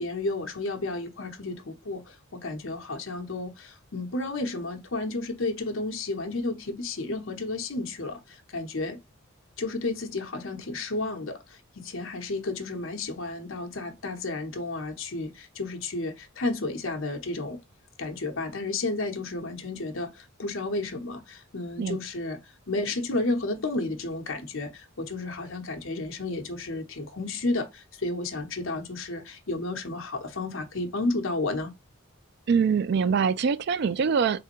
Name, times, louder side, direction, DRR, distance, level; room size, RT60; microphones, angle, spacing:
voice 1, 0.0-9.0 9.6-17.6 18.0-22.4 22.7-31.7, left 2 dB, 65° left, 0.9 m, -32 dB
voice 2, 32.5-34.4, right 6 dB, 50° right, 0.3 m, -24 dB
3.5 x 3.3 x 2.9 m
head